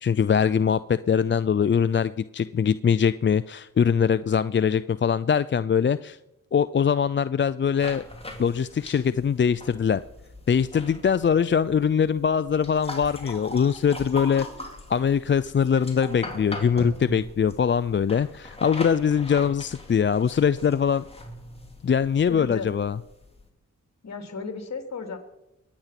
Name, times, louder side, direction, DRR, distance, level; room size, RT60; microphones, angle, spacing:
voice 1, 0.0-6.2 6.5-8.0 8.4-10.0 10.5-14.5 14.9-21.0 21.8-23.0, left 7 dB, 40° left, 14 dB, 0.5 m, -22 dB
sound 1, 7.8-23.5, left 1 dB, 20° left, 3.3 m, -40 dB
voice 2, 22.3-22.7 24.0-25.2, left 4 dB, 60° left, 5 dB, 3.1 m, -34 dB
23.0 x 9.6 x 5.9 m, 0.89 s
cardioid pair, 65°, 31 cm